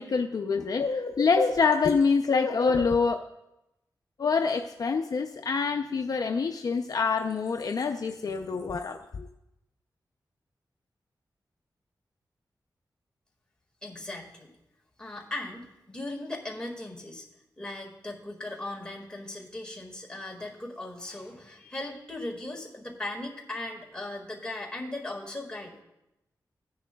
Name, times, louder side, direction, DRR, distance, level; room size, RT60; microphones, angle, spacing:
voice 1, 0.0-3.2 4.2-9.3, left 5 dB, 55° left, 5 dB, 0.5 m, -26 dB
voice 2, 13.8-14.5 15.0-17.3 17.6-25.8, left 2 dB, 10° left, -1 dB, 1.8 m, -38 dB
15.5 x 10.0 x 2.2 m, 0.90 s
wide cardioid pair, 125°, 7 cm